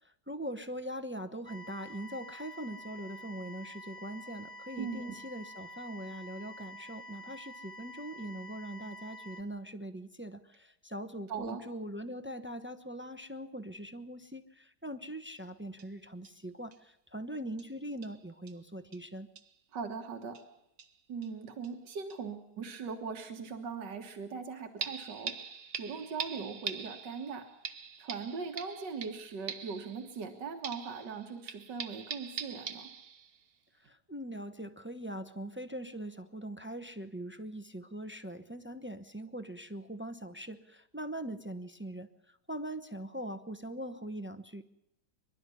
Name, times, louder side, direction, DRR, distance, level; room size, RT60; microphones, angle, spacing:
voice 1, 0.0-19.3 33.8-44.6, right 1 dB, 15° right, 10 dB, 0.5 m, -42 dB
sound 1, 1.5-9.4, left 1 dB, 10° left, 1.5 m, -48 dB
voice 2, 4.8-5.1 11.3-11.6 19.7-20.4 21.1-25.4 25.8-27.5 28.0-32.9, right 5 dB, 85° right, 5 dB, 2.1 m, -40 dB
sound 2, 15.4-15.5 15.8-15.9 16.2-16.3 16.7-16.8 17.6-17.7 18.0-18.2 18.5-18.6 18.9-19.0 19.4-19.5 20.3-20.5 20.8-21.3 21.6-21.7 22.1-22.2 24.8-30.3 30.6-33.4 33.8-33.9, right 6 dB, 60° right, 1.6 m, -43 dB
25.0 x 12.0 x 9.8 m, 0.84 s
omnidirectional pair, 1.8 m